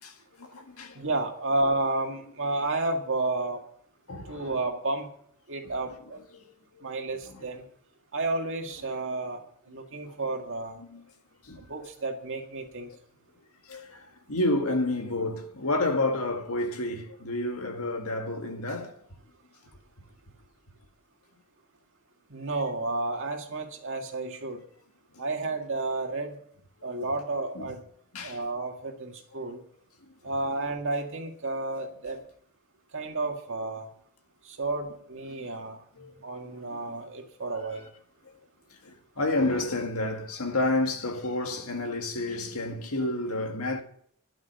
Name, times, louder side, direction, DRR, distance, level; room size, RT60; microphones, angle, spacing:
voice 1, 0.0-1.0 4.1-4.6 5.6-5.7 6.3-6.4 6.7-6.9 7.3-7.4 10.1-10.2 10.8-11.0 11.4-11.6 13.7-19.0 25.1-25.2 27.6-27.7 28.1-28.4 35.3-35.5 36.0-36.2 36.6-37.0 38.8-43.8, left 2 dB, 90° left, 1.8 m, -30 dB
voice 2, 1.0-3.6 4.3-5.1 5.5-6.2 6.8-7.6 8.1-10.8 11.6-12.9 22.3-24.6 25.2-26.4 26.8-27.8 28.2-29.6 30.2-32.2 32.9-33.9 34.4-35.8 36.2-37.9, right 2 dB, 65° right, 1.9 m, -31 dB
11.5 x 6.2 x 9.1 m
head